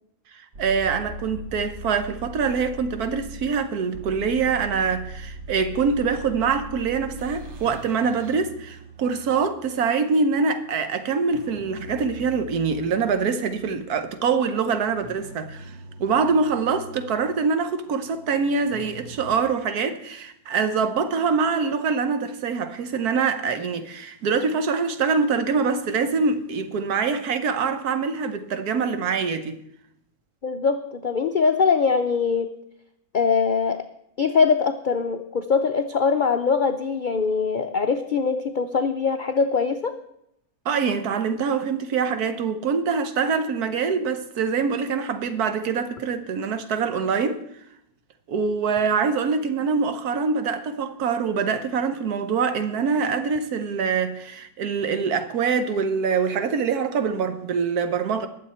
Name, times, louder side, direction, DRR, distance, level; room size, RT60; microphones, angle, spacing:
voice 1, 0.3-15.7 16.0-29.6 40.6-47.4 48.3-58.3, right 5 dB, 75° right, 1.4 m, -24 dB
sound 1, 0.5-19.4, right 1 dB, 50° right, 1.3 m, -41 dB
voice 2, 30.4-32.6 33.1-33.8 34.2-40.0, left 5 dB, 70° left, 0.4 m, -22 dB
20.5 x 7.4 x 4.3 m
omnidirectional pair, 1.7 m